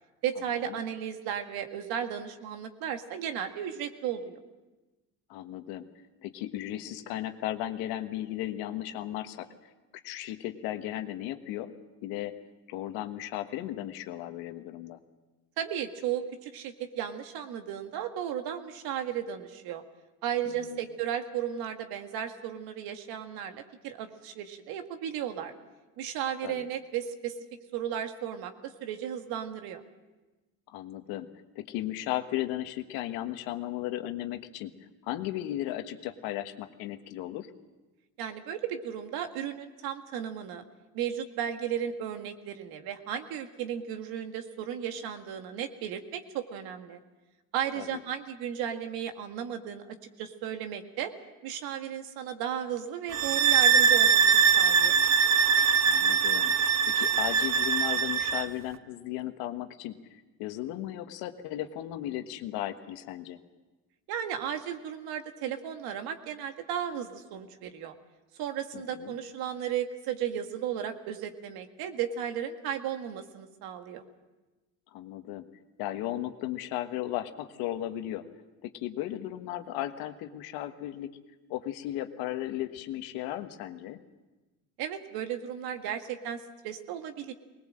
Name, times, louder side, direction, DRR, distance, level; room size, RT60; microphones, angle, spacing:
voice 1, 0.2-4.4 15.6-19.8 20.2-25.5 26.0-27.4 27.7-29.8 38.2-40.6 40.9-47.0 47.5-49.8 50.2-51.1 51.4-55.0 64.1-68.0 68.4-74.0 84.8-87.3, right 9 dB, 80° right, 6 dB, 2.0 m, -35 dB
voice 2, 5.3-9.7 10.0-11.7 12.0-12.4 12.7-15.0 20.4-20.8 26.4-26.7 30.7-34.7 35.0-37.5 47.8-48.0 55.8-56.5 56.9-63.4 68.7-69.1 74.9-75.5 75.8-78.3 78.6-81.1 81.5-84.0, left 13 dB, 85° left, 8 dB, 1.5 m, -36 dB
sound 1, 53.1-58.5, right 7 dB, 45° right, 1.0 m, -22 dB
20.5 x 20.0 x 7.6 m, 1.2 s
supercardioid pair, 80°, 36 cm